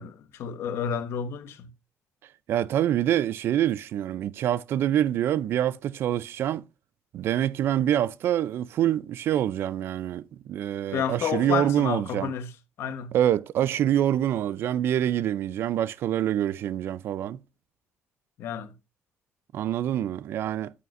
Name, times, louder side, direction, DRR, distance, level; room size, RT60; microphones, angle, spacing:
voice 1, 0.0-1.7 10.9-12.5 12.8-13.1 18.4-18.7, left 8 dB, 70° left, 1.0 m, -30 dB
voice 2, 2.5-6.6 7.1-12.3 13.1-17.4 19.5-20.7, right 11 dB, 65° right, 0.4 m, -26 dB
9.2 x 8.4 x 2.5 m
cardioid pair, 175°, 4 cm